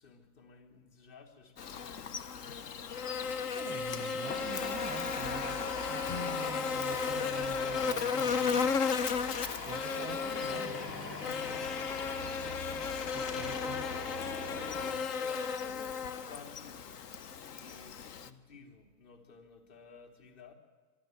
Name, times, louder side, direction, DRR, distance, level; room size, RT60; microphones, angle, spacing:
voice 1, 0.0-2.1 2.8-3.6 9.5-11.8 14.2-16.0 16.3-17.0 17.5-20.5, left 5 dB, 55° left, 2 dB, 3.8 m, -54 dB
Buzz, 1.6-18.3, left 6 dB, 70° left, 1.2 m, -35 dB
voice 2, 3.5-8.7 9.6-10.8 13.1-13.9, right 10 dB, 20° right, 15 dB, 0.5 m, -46 dB
sound 1, 4.2-14.9, left 3 dB, 85° left, 3.5 m, -42 dB
Guitar, 6.0-8.6, left 5 dB, 20° left, 0.6 m, -48 dB
24.0 x 12.5 x 9.5 m, 1.4 s
hypercardioid pair, 110°, 49 cm